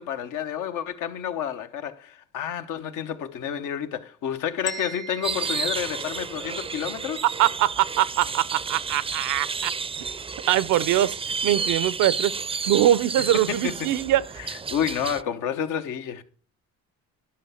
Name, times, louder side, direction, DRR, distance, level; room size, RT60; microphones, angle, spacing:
voice 1, 0.0-7.2 13.3-13.9 14.4-16.2, left 9 dB, 90° left, 1.1 m, -30 dB
sound 1, 4.7-6.7, left 2 dB, 60° left, 2.1 m, -39 dB
sound 2, 5.2-15.2, right 5 dB, 20° right, 0.4 m, -31 dB
voice 2, 7.4-9.7 10.5-11.2 11.4-12.3 12.7-14.2, right 13 dB, 80° right, 0.6 m, -22 dB
11.5 x 5.6 x 5.7 m
cardioid pair, 90°, 30 cm